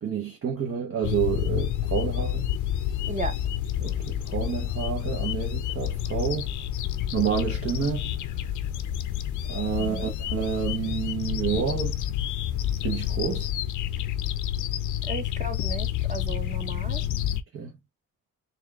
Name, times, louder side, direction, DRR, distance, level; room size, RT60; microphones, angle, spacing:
voice 1, 0.0-2.5 3.8-6.5 7.1-8.1 9.5-12.0 12.8-13.5 17.0-17.2 17.5-17.7, right 7 dB, 45° right, 0.9 m, -29 dB
sound 1, 1.0-17.4, left 11 dB, 80° left, 0.7 m, -29 dB
voice 2, 3.1-3.4 9.8-10.1 15.0-17.0, right 3 dB, 25° right, 1.0 m, -35 dB
4.3 x 2.4 x 3.5 m
cardioid pair, 90°, 30 cm